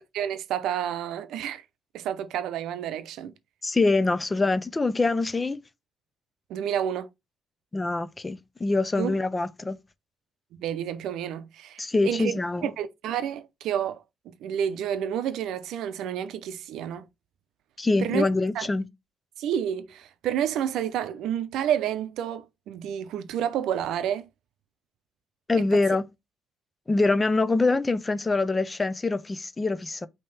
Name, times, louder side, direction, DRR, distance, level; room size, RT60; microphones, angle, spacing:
voice 1, 0.1-1.6 1.9-3.3 6.5-7.1 9.0-9.2 10.6-14.0 14.4-17.0 18.0-18.3 18.5-18.7 19.4-24.3 25.6-25.7, right 9 dB, 85° right, 0.5 m, -30 dB
voice 2, 3.6-5.6 7.7-9.8 11.8-12.7 17.8-18.9 25.5-26.1 26.9-30.1, left 3 dB, 25° left, 0.5 m, -24 dB
5.3 x 2.8 x 3.3 m
cardioid pair, 90°, 0 cm